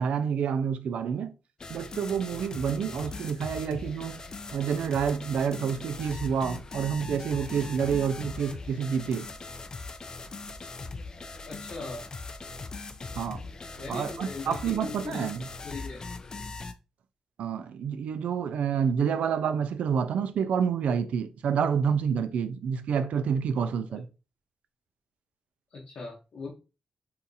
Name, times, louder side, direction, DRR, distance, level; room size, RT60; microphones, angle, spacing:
voice 1, 0.0-1.3 1.7-4.2 4.5-9.3 13.2-13.4 13.9-15.5 17.4-24.1, right 7 dB, 90° right, 0.4 m, -28 dB
sound 1, 1.6-16.7, left 3 dB, 35° left, 0.4 m, -40 dB
voice 2, 11.5-12.1 13.8-15.3 15.6-16.0 23.9-24.0 25.7-26.5, left 3 dB, 55° left, 0.8 m, -39 dB
2.8 x 2.5 x 3.8 m
wide cardioid pair, 125°, 2 cm